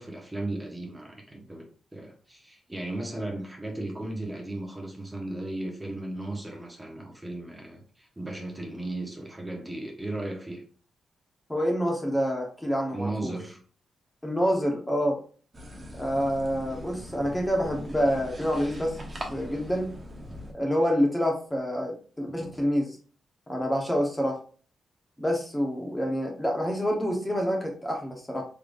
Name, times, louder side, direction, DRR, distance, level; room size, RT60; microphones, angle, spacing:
voice 1, 0.0-1.7 1.9-10.6 12.9-13.6, right 2 dB, 15° right, 0 dB, 1.3 m, -36 dB
voice 2, 11.5-13.3 14.2-15.2 16.0-19.0 19.3-19.9 20.5-23.0 23.5-24.4 25.2-28.4, equal, 15° left, 0 dB, 1.3 m, -27 dB
sound 1, 15.5-20.5, equal, 35° right, 1.1 m, -40 dB
3.7 x 3.2 x 2.6 m, 0.41 s
hypercardioid pair, 40°, 0 cm